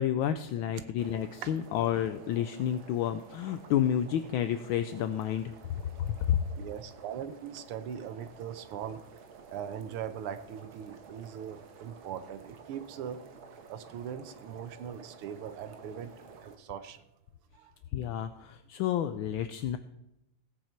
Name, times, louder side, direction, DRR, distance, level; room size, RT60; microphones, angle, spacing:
voice 1, 0.0-5.5 6.0-6.4 17.9-19.8, left 10 dB, 75° left, 10 dB, 1.3 m, -30 dB
sound 1, 1.0-16.6, right 5 dB, 70° right, 1.9 m, -52 dB
voice 2, 6.5-9.0 9.5-13.2 13.6-17.0 17.5-17.7, right 8 dB, 85° right, 12 dB, 1.8 m, -40 dB
17.0 x 8.8 x 4.5 m, 0.88 s
omnidirectional pair, 2.4 m